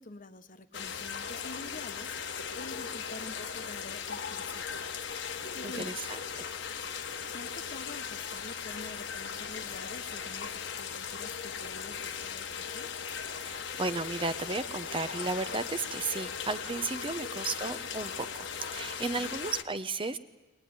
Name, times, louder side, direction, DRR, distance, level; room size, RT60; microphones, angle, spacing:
voice 1, 0.0-4.8 5.1-6.0 7.3-12.9 16.9-17.3 19.2-19.3, left 2 dB, 45° left, 10 dB, 1.1 m, -47 dB
sound 1, 0.7-19.6, left 6 dB, 65° left, 1.3 m, -38 dB
voice 2, 5.6-6.5 13.4-20.2, right 3 dB, 25° right, 11 dB, 0.8 m, -34 dB
21.5 x 21.0 x 9.6 m, 1.2 s
head